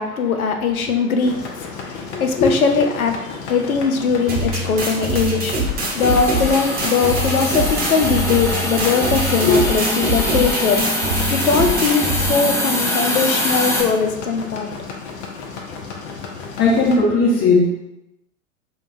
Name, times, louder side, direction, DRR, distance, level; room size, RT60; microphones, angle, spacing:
voice 1, 0.0-10.8 11.3-14.7, left 5 dB, 85° left, 5 dB, 0.6 m, -20 dB
sound 1, 1.2-17.0, left 4 dB, 55° left, 0.8 m, -34 dB
voice 2, 2.1-2.5 8.9-9.0 9.4-9.7 16.6-17.7, left 3 dB, 35° left, -3 dB, 1.3 m, -17 dB
sound 2, 4.3-12.3, right 1 dB, 20° right, 0.9 m, -24 dB
Hiss, 6.0-13.8, left 1 dB, 10° left, 0.4 m, -24 dB
5.0 x 2.3 x 2.6 m, 0.87 s
figure-of-eight pair, 85°, 42 cm